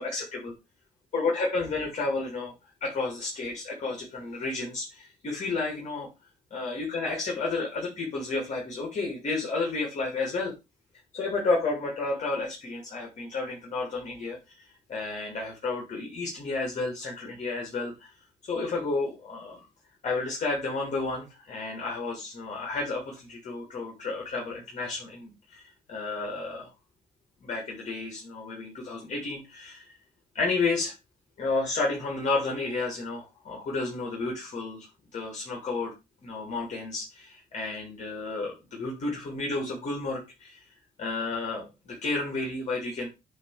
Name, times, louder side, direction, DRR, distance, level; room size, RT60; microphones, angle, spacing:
voice 1, 0.0-0.5 1.1-2.5 2.8-6.1 6.5-10.5 11.1-14.6 14.9-18.1 18.4-19.7 20.0-26.7 27.4-29.9 30.3-30.9 31.4-34.9 35.1-35.9 36.2-40.6 41.0-43.1, left 3 dB, 50° left, -1 dB, 2.5 m, -31 dB
8.2 x 3.3 x 4.7 m, 0.25 s
cardioid pair, 125°, 15 cm